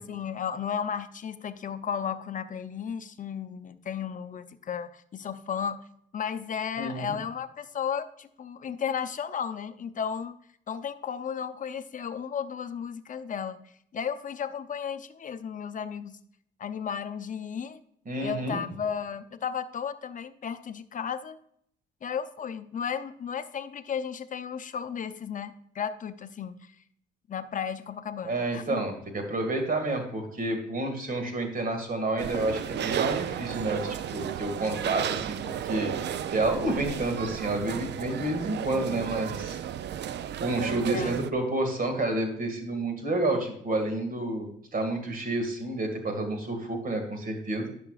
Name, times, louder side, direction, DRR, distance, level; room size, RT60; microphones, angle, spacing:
voice 1, 0.0-5.8 6.1-10.4 10.7-13.6 13.9-16.2 16.6-17.8 18.2-21.4 22.0-26.7 27.3-28.8 40.9-41.2, left 7 dB, 40° left, 11 dB, 0.6 m, -34 dB
voice 2, 6.8-7.2 18.1-18.6 28.2-35.9 36.3-39.6 40.4-47.7, right 2 dB, 45° right, 5 dB, 2.0 m, -30 dB
sound 1, 32.2-41.3, right 9 dB, 60° right, 0.5 m, -33 dB
10.5 x 5.9 x 2.4 m, 0.68 s
cardioid pair, 90°, 20 cm